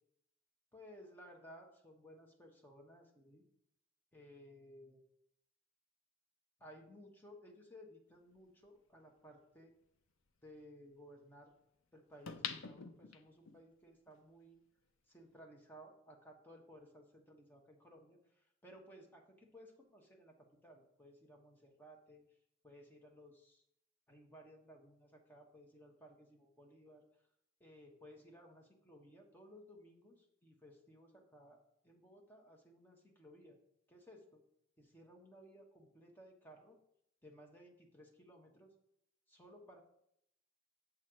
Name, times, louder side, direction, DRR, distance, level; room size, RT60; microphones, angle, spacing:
voice 1, 0.7-3.4 4.1-5.0 6.6-9.7 10.4-11.5 11.9-14.6 15.1-22.2 22.6-23.6 24.1-27.0 27.6-31.6 31.8-33.6 33.9-34.4 34.8-36.8 37.2-38.7 39.3-39.8, equal, 10° left, 0 dB, 1.2 m, -59 dB
sound 1, 8.6-8.7 12.3-13.6 14.1-14.2, left 7 dB, 70° left, 0.6 m, -44 dB
7.3 x 4.3 x 6.3 m, 0.74 s
head